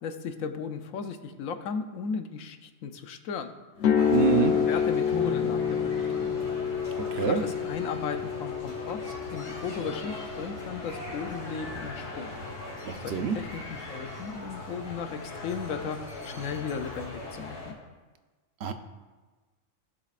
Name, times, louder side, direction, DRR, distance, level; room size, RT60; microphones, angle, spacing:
voice 1, 0.0-3.5 4.1-5.6 6.0-6.4 7.1-12.3 13.0-17.7, left 6 dB, 90° left, 8 dB, 1.1 m, -36 dB
sound 1, 3.8-11.8, left 7 dB, 60° left, 0.9 m, -29 dB
sound 2, 4.0-17.7, left 2 dB, 75° left, 2.5 m, -40 dB
voice 2, 4.1-4.5 7.1-7.4 12.8-13.4 18.6-18.7, right 8 dB, 60° right, 8 dB, 0.9 m, -26 dB
sound 3, 5.1-10.7, left 2 dB, 30° left, 1.3 m, -43 dB
16.5 x 7.3 x 2.5 m, 1.3 s
omnidirectional pair, 1.4 m